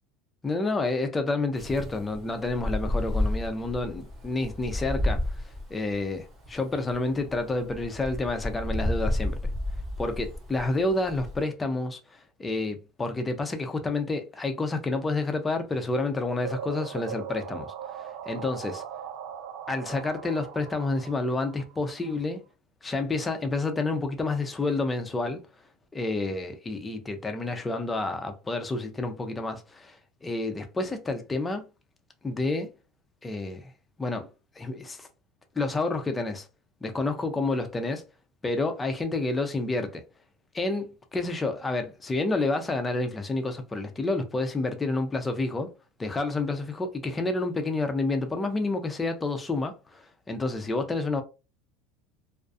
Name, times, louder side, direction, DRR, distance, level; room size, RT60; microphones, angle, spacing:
voice 1, 0.4-5.3 5.7-9.4 10.0-17.7 18.3-18.8 19.7-22.4 22.8-25.4 25.9-31.7 32.2-32.7 33.2-33.7 34.0-34.3 34.6-35.1 35.6-36.5 36.8-38.0 38.4-40.0 40.5-45.7 46.0-51.2, left 2 dB, 10° left, 0.3 m, -29 dB
Wind, 1.6-11.4, left 1 dB, 25° right, 0.8 m, -32 dB
sound 1, 16.4-22.2, right 8 dB, 55° right, 0.4 m, -39 dB
2.3 x 2.3 x 2.4 m
cardioid pair, 170°, 0 cm